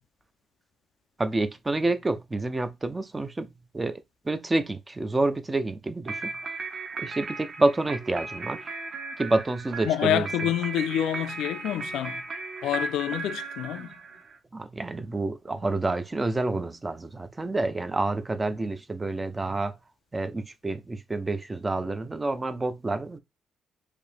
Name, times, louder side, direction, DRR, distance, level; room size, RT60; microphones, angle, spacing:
voice 1, 1.2-3.5 3.7-6.3 7.0-8.6 9.2-10.3 14.5-19.8 20.1-23.2, right 2 dB, 15° right, 0.4 m, -28 dB
sound 1, 6.1-14.4, right 3 dB, 40° right, 0.9 m, -36 dB
voice 2, 9.9-12.2 12.6-13.9, left 11 dB, 80° left, 0.4 m, -27 dB
4.9 x 2.6 x 3.3 m
cardioid pair, 150°, 0 cm